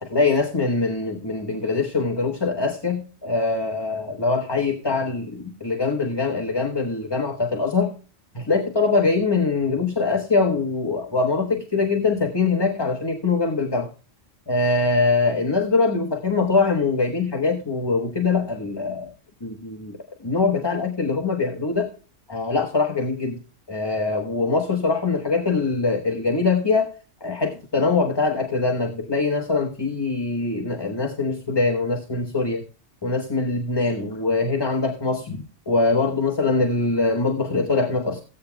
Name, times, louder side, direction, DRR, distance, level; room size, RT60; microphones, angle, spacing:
voice 1, 0.0-7.9 8.3-13.9 14.5-19.1 19.4-20.0 20.2-21.9 22.3-23.4 23.7-26.9 27.2-32.6 33.0-38.2, left 3 dB, 20° left, 2 dB, 1.2 m, -23 dB
16.0 x 9.0 x 2.3 m, 0.35 s
omnidirectional pair, 1.3 m